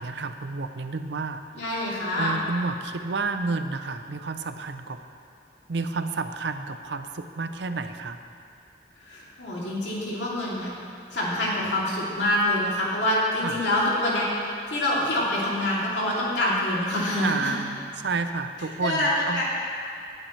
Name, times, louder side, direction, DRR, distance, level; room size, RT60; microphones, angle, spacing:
voice 1, 0.0-1.4 2.2-5.0 5.7-8.2 13.4-13.7 17.2-19.4, right 3 dB, 75° right, 9 dB, 0.6 m, -30 dB
voice 2, 1.5-2.4 9.0-10.7 11.1-14.3 14.7-17.5 18.8-19.4, left 1 dB, 80° left, -6 dB, 2.8 m, -26 dB
18.0 x 9.0 x 3.3 m, 2.5 s
head